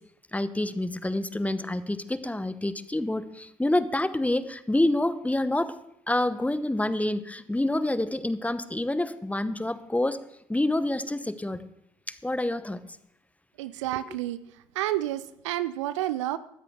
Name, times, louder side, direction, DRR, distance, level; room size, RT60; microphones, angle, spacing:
voice 1, 0.3-5.8 6.1-10.2 10.5-11.6 12.1-12.8, left 1 dB, 10° left, 14 dB, 1.1 m, -27 dB
voice 2, 13.6-14.4 14.7-16.4, right 14 dB, 75° right, 15 dB, 0.6 m, -30 dB
19.0 x 13.5 x 3.8 m, 0.79 s
figure-of-eight pair, 45°, 16 cm